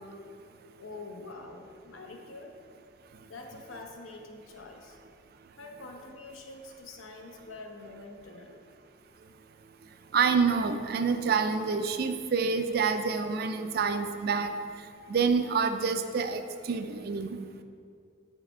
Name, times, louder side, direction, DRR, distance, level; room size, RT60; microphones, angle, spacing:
voice 1, 0.8-2.6 3.3-5.0 5.6-8.6, left 2 dB, 90° left, 2 dB, 0.9 m, -45 dB
voice 2, 10.1-14.5 15.1-17.4, right 5 dB, 50° right, 8 dB, 0.4 m, -27 dB
7.5 x 4.8 x 4.4 m, 2.3 s
head